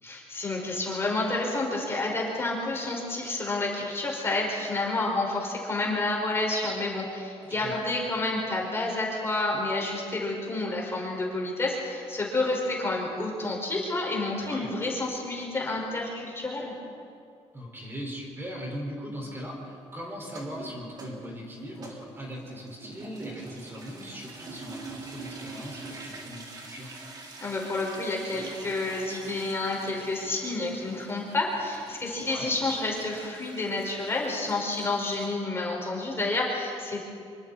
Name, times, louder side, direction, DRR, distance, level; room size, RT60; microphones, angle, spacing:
voice 1, 0.0-16.8 27.4-37.1, left 2 dB, 25° left, -2 dB, 5.2 m, -29 dB
voice 2, 7.5-7.8 14.4-14.7 17.5-26.9 32.3-32.5, equal, 20° right, -1 dB, 5.2 m, -39 dB
sound 1, 20.2-35.3, right 3 dB, 40° right, 3.8 m, -45 dB
25.5 x 24.5 x 4.3 m, 2.4 s
cardioid pair, 120°, 11 cm